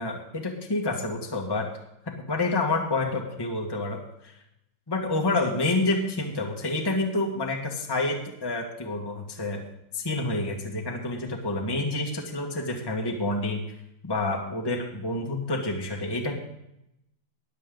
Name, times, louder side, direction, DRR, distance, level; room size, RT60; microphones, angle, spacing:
voice 1, 0.0-1.7 2.1-4.3 4.9-9.6 9.9-13.6 14.0-16.4, left 2 dB, 10° left, 1 dB, 1.4 m, -28 dB
20.5 x 7.6 x 3.9 m, 0.82 s
omnidirectional pair, 2.4 m